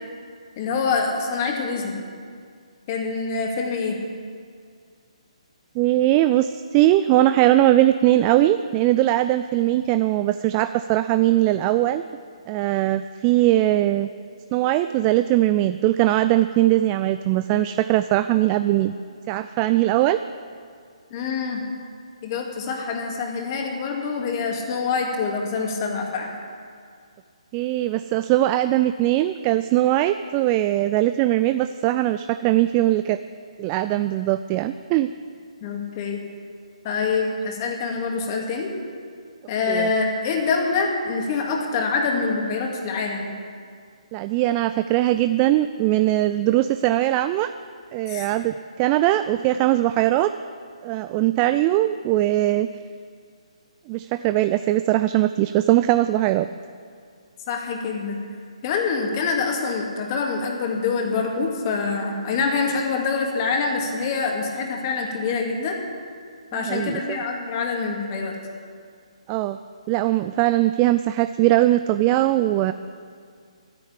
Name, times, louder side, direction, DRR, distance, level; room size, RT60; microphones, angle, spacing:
voice 1, 0.6-2.0 2.9-4.0 21.1-21.6 22.2-26.3 35.6-36.2 36.8-38.7 39.5-43.3 48.1-48.3 57.5-58.2 58.6-65.8 66.5-68.4, left 4 dB, 35° left, 1 dB, 2.4 m, -25 dB
voice 2, 5.8-12.0 12.5-14.1 14.5-18.9 19.3-20.2 27.5-33.2 33.6-35.1 39.7-39.9 44.1-47.5 47.9-50.3 50.8-52.7 53.9-56.5 66.5-67.2 69.3-69.6 69.9-72.7, right 15 dB, 25° right, 11 dB, 0.3 m, -20 dB
13.0 x 9.8 x 8.5 m, 2.1 s
figure-of-eight pair, 140°, 4 cm